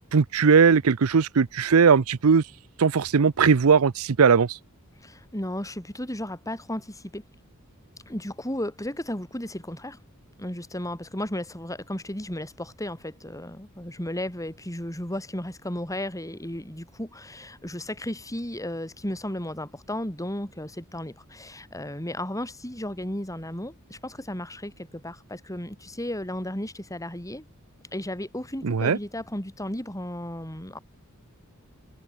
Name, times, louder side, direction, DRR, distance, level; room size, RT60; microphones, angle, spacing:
voice 1, 0.1-2.4 2.8-4.6 28.6-29.0, right 5 dB, 70° right, 0.6 m, -19 dB
voice 2, 5.0-7.2 8.0-10.0 10.4-27.5 27.9-30.8, left 1 dB, 15° left, 6.8 m, -34 dB
head